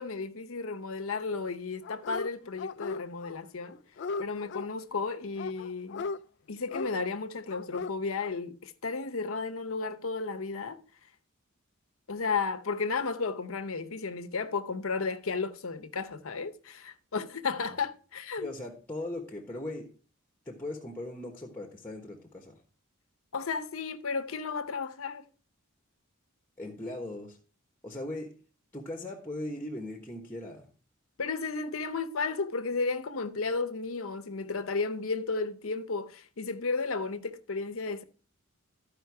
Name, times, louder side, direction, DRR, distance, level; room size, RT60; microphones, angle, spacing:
voice 1, 0.0-3.8 4.2-6.1 6.5-10.8 12.1-18.5 23.3-25.3 31.2-38.0, left 4 dB, 75° left, 0.8 m, -33 dB
Dog, 1.8-2.3 2.6-3.4 3.6-4.7 5.4-6.2 6.7-6.9 7.5-7.9 8.2-8.3, left 4 dB, 55° left, 0.4 m, -37 dB
voice 2, 18.4-19.9 20.4-22.6 26.6-27.4 27.8-28.3 28.7-30.7, left 1 dB, 10° left, 1.2 m, -39 dB
13.5 x 5.1 x 4.7 m
head